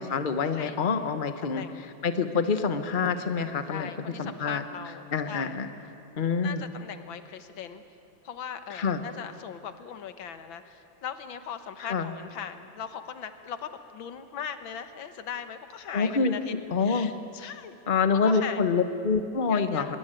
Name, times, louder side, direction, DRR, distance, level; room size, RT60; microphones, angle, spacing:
voice 1, 0.0-1.6 2.0-3.9 4.2-4.6 5.1-5.7 6.2-6.7 8.7-9.0 11.9-12.1 15.9-16.4 16.7-17.1 17.9-20.0, left 5 dB, 30° left, 9 dB, 1.1 m, -26 dB
voice 2, 1.4-1.8 3.7-5.6 6.4-7.8 8.2-17.8 18.1-18.7 19.5-20.0, left 8 dB, 80° left, 10 dB, 2.0 m, -39 dB
23.0 x 22.0 x 9.0 m, 2.8 s
omnidirectional pair, 2.1 m